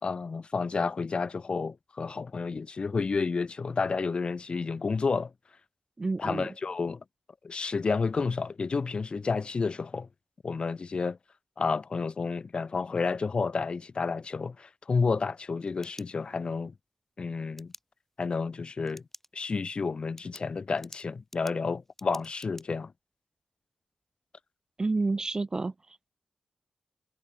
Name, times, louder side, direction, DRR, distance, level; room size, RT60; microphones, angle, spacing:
voice 1, 0.0-5.3 6.2-7.0 7.4-10.1 10.4-11.2 11.6-16.7 17.2-17.7 18.2-19.0 19.3-22.9, left 4 dB, 50° left, 3.1 m, -30 dB
voice 2, 6.0-6.5 24.8-25.7, right 3 dB, 30° right, 0.5 m, -29 dB
sound 1, 15.5-16.6 17.6-17.8 18.9-19.3 19.7-19.8 20.2-22.7, left 1 dB, 10° left, 3.6 m, -50 dB
wide cardioid pair, 90°, 2 cm